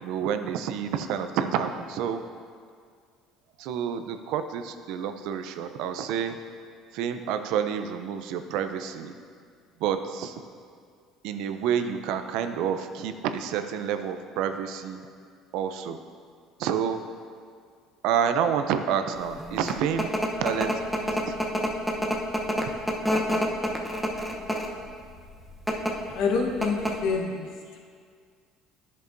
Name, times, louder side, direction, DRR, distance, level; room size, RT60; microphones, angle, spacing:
voice 1, 0.0-2.2 3.6-6.4 6.9-9.2 9.8-10.4 11.2-15.0 15.5-16.0 16.6-17.0 18.0-20.1 20.4-21.3, right 8 dB, 75° right, 8 dB, 0.5 m, -29 dB
sound 1, 19.4-24.8 25.5-25.9 26.3-26.4 26.6-27.1, equal, ahead, 0.8 m, -27 dB
voice 2, 26.1-27.5, left 4 dB, 75° left, 1 dB, 1.1 m, -26 dB
10.5 x 6.6 x 2.6 m, 2.1 s
cardioid pair, 115°, 0 cm